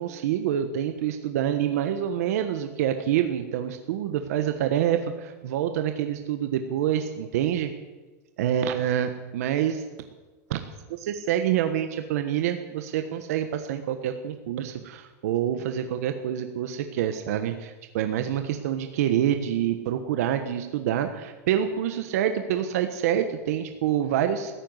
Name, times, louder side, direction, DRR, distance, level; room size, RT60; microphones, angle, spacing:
voice 1, 0.0-7.7 8.4-9.8 10.5-10.6 11.0-24.5, right 10 dB, 65° right, 7 dB, 1.3 m, -27 dB
15.0 x 9.1 x 9.7 m, 1.2 s
supercardioid pair, 170°, 9 cm